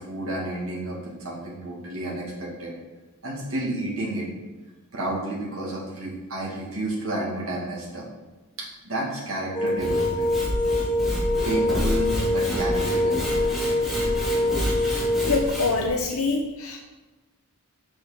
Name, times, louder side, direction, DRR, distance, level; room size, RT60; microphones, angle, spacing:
voice 1, 0.0-2.7 3.2-4.3 4.9-8.0 8.6-10.3 11.4-13.5, right 1 dB, 70° right, -5 dB, 2.4 m, -31 dB
sound 1, 9.5-15.4, left 1 dB, 20° left, 1.5 m, -25 dB
Sawing / Wood, 9.7-15.9, equal, ahead, 2.3 m, -29 dB
voice 2, 15.2-16.8, left 3 dB, 80° left, 1 dB, 0.8 m, -25 dB
6.6 x 6.2 x 5.2 m, 1.2 s
head